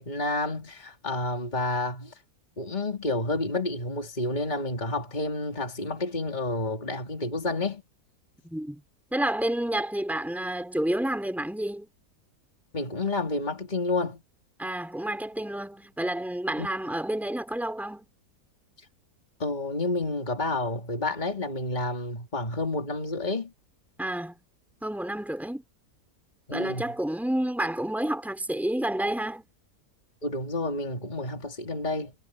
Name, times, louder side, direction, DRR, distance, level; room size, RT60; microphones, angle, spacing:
voice 1, 0.0-2.2 2.6-7.8 12.7-14.2 16.6-16.7 18.8-18.9 19.4-23.5 26.5-26.9 30.2-32.1, left 2 dB, 30° left, 3.0 m, -30 dB
voice 2, 8.4-8.8 9.1-11.9 14.6-18.1 24.0-24.3 24.8-25.6 26.5-29.5, right 1 dB, ahead, 4.7 m, -29 dB
omnidirectional pair, 1.6 m